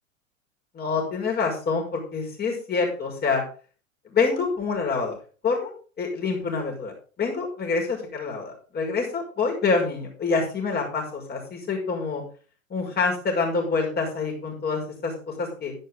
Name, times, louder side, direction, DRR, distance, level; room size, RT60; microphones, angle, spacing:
voice 1, 0.7-3.4 4.0-5.2 5.4-6.9 7.2-12.2 12.7-15.7, left 4 dB, 25° left, 0 dB, 5.7 m, -26 dB
11.0 x 11.0 x 3.7 m, 0.38 s
figure-of-eight pair, 95°, 41 cm